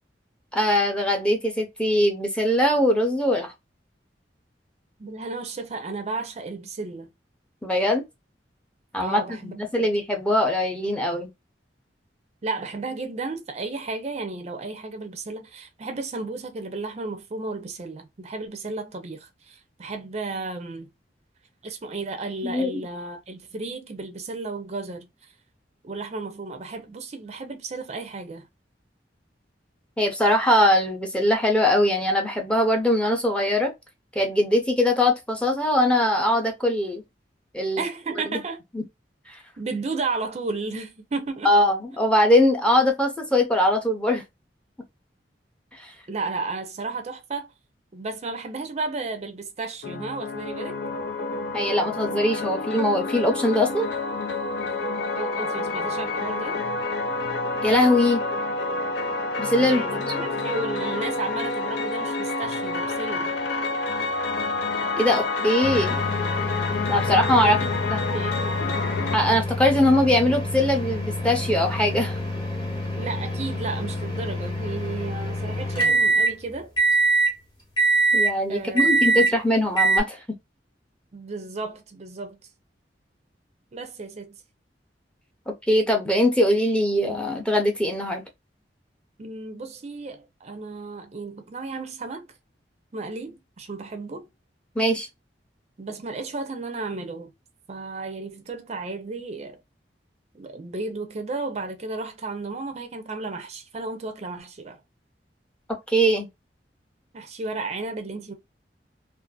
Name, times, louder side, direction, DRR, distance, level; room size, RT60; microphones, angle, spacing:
voice 1, 0.5-3.5 7.6-8.0 8.9-11.3 22.4-22.7 30.0-33.7 34.1-37.0 37.5-37.8 38.7-38.8 39.3-39.4 41.4-44.2 45.8-45.9 51.5-53.9 57.6-58.2 59.4-60.2 65.0-66.0 66.9-67.6 67.9-68.0 69.1-72.2 78.1-80.2 85.7-88.2 94.8-95.1 105.9-106.3, left 1 dB, 5° left, 0.6 m, -21 dB
voice 2, 5.0-7.1 9.0-9.9 12.4-20.9 21.6-25.1 25.8-28.5 37.8-38.6 39.6-41.5 46.1-47.5 47.9-50.8 55.1-56.6 59.6-63.3 67.3-68.4 73.0-76.7 78.5-79.3 81.1-82.4 83.7-84.4 89.2-92.3 92.9-94.3 95.8-97.3 97.7-99.6 100.3-104.8 107.1-108.3, right 3 dB, 40° right, 0.5 m, -33 dB
sound 1, 49.8-69.2, left 3 dB, 90° left, 0.6 m, -28 dB
sound 2, 65.6-76.3 76.8-77.3 77.8-78.3 78.8-79.3 79.8-80.0, right 2 dB, 25° left, 1.0 m, -25 dB
2.5 x 2.4 x 2.3 m
head